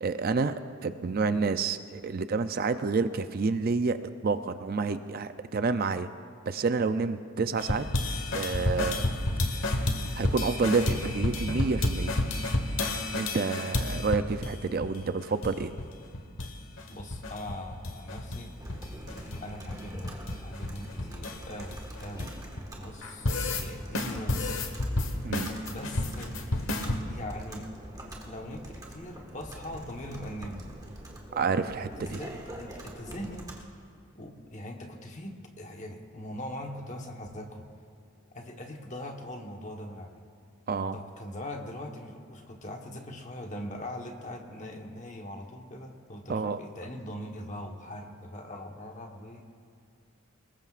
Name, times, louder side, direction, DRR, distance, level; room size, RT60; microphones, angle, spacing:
voice 1, 0.0-6.1 6.5-7.9 8.3-9.1 10.2-12.2 13.2-15.8 25.2-25.5 31.3-32.2 40.7-41.0 46.3-46.6, right 4 dB, 45° right, 10 dB, 0.4 m, -29 dB
sound 1, 7.6-14.5 14.8-14.9 15.2-15.9 16.1-16.5 16.8-18.4 18.7-22.6 23.0-23.6 23.9-27.0, left 2 dB, 65° left, 1.3 m, -30 dB
voice 2, 16.9-18.5 19.4-22.3 22.8-23.3 23.6-24.5 25.6-26.4 27.1-27.7 28.2-30.7 31.8-33.5 34.1-37.7 38.3-40.2 40.9-49.4, left 1 dB, 35° left, 2 dB, 1.2 m, -41 dB
Computer keyboard, 18.6-33.6, right 1 dB, 15° right, 1.5 m, -45 dB
23.0 x 20.0 x 2.5 m, 2.5 s
head